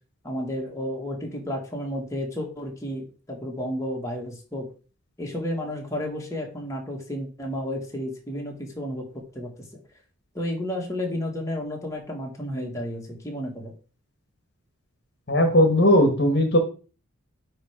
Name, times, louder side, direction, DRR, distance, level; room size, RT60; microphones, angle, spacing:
voice 1, 0.2-4.7 5.2-9.1 9.4-9.8 10.4-13.7, equal, 15° left, 0 dB, 1.6 m, -32 dB
voice 2, 15.3-16.6, left 1 dB, 50° left, 5 dB, 1.2 m, -18 dB
9.4 x 3.2 x 4.9 m, 0.36 s
head